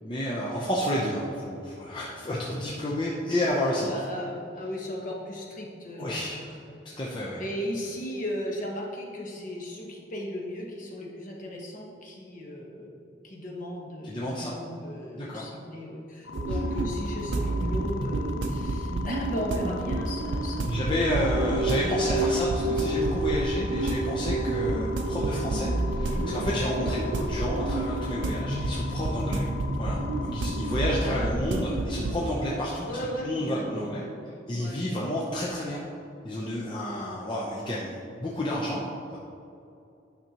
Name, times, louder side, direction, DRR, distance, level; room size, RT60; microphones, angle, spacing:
voice 1, 0.0-4.0 6.0-6.4 7.0-7.4 14.0-14.5 15.2-15.5 20.7-29.4 29.8-32.9 33.2-34.0 34.5-35.8 36.2-38.8, left 1 dB, 25° left, -6 dB, 0.6 m, -30 dB
voice 2, 3.8-21.4 21.7-22.2 26.7-27.0 29.3-29.4 31.0-31.3 32.8-34.1 34.5-34.8, equal, 45° left, -2 dB, 1.2 m, -36 dB
sound 1, 16.2-31.3, left 6 dB, 75° left, 0.4 m, -41 dB
sound 2, 16.3-32.3, right 2 dB, 70° right, 0.5 m, -30 dB
sound 3, 20.7-28.3, right 2 dB, 35° right, 1.1 m, -32 dB
9.3 x 5.8 x 2.9 m, 2.7 s
head